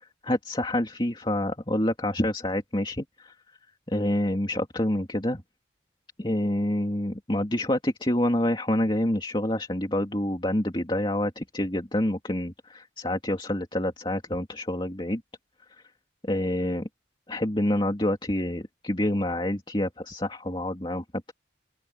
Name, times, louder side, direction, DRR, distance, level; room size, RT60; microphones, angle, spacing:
voice 1, 0.0-3.3 3.9-5.4 6.2-15.2 16.2-16.9 17.3-21.3, left 1 dB, 25° left, 2.7 m, -27 dB
open air
head